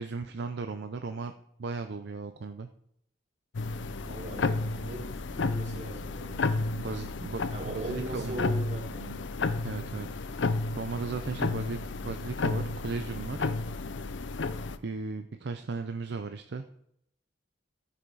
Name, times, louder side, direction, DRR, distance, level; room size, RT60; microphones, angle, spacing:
voice 1, 0.0-1.3 1.6-2.7 6.8-8.4 9.6-10.4 10.7-13.5 14.8-16.7, right 4 dB, 65° right, 8 dB, 0.5 m, -36 dB
sound 1, 3.5-14.8, left 3 dB, 75° left, 0.6 m, -32 dB
voice 2, 4.0-6.5 7.5-9.3, right 2 dB, 40° right, -1 dB, 3.0 m, -39 dB
13.5 x 5.8 x 4.7 m, 0.74 s
head